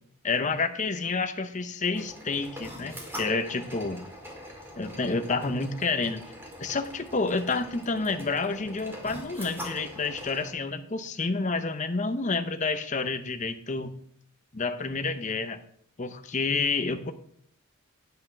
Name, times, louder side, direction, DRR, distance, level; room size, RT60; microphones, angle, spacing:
voice 1, 0.2-4.0 4.8-6.2 6.6-13.9 14.5-15.6 16.0-17.1, left 4 dB, 35° left, 8 dB, 0.7 m, -29 dB
sound 1, 1.9-10.5, equal, 10° right, 2.2 m, -42 dB
9.7 x 5.6 x 5.7 m, 0.66 s
head